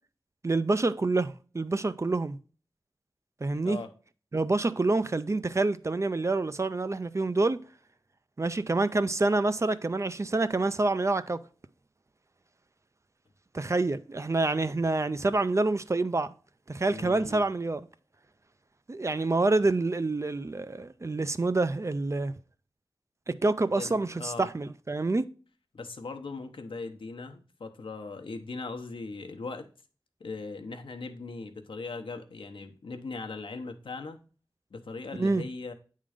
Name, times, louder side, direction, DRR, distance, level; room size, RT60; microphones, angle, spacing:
voice 1, 0.4-2.4 3.4-3.8 4.3-7.6 8.4-11.4 13.5-16.3 16.7-17.9 18.9-22.3 23.3-25.2 35.2-35.4, right 2 dB, 35° right, 0.4 m, -27 dB
voice 2, 16.9-17.4 23.8-24.5 25.7-29.7 30.2-34.2 34.7-35.7, left 3 dB, 85° left, 0.8 m, -39 dB
8.7 x 3.7 x 4.9 m
wide cardioid pair, 65°, 9 cm